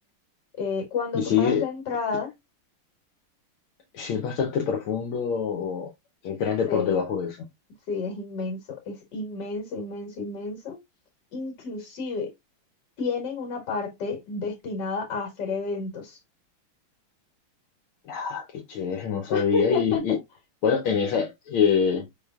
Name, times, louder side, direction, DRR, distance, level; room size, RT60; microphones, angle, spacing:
voice 1, 0.6-2.3 6.7-7.0 7.9-10.8 11.3-12.3 13.0-16.2 19.3-20.2, left 4 dB, 55° left, 2.2 m, -31 dB
voice 2, 1.1-1.6 3.9-5.9 6.2-7.4 18.1-20.2 20.6-22.1, left 6 dB, 75° left, 1.6 m, -25 dB
4.7 x 3.5 x 2.3 m
omnidirectional pair, 2.4 m